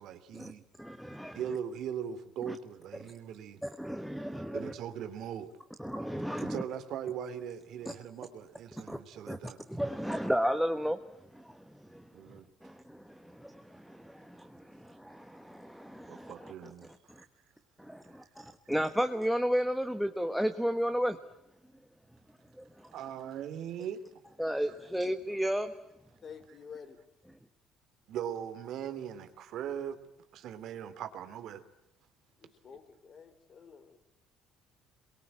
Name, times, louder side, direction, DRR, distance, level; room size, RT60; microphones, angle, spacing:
voice 1, 0.0-0.6 1.3-3.6 4.5-5.5 6.4-9.6 12.1-12.5 16.1-16.9 17.2-17.3 22.9-24.2 24.7-24.8 28.1-30.0 30.3-31.6, right 9 dB, 55° right, 9 dB, 3.0 m, -40 dB
voice 2, 0.8-1.4 2.5-2.6 3.6-4.7 5.8-6.6 7.8-7.9 8.9-9.0 9.3-9.4 9.7-11.0 11.3-12.0 12.3-16.5 17.1-17.2 17.8-21.2 22.6-22.9 24.4-25.7, equal, ahead, 8 dB, 1.2 m, -33 dB
voice 3, 26.2-27.0 32.4-34.0, left 6 dB, 30° left, 10 dB, 3.6 m, -50 dB
28.0 x 22.5 x 8.8 m, 0.88 s
cardioid pair, 155°, 0 cm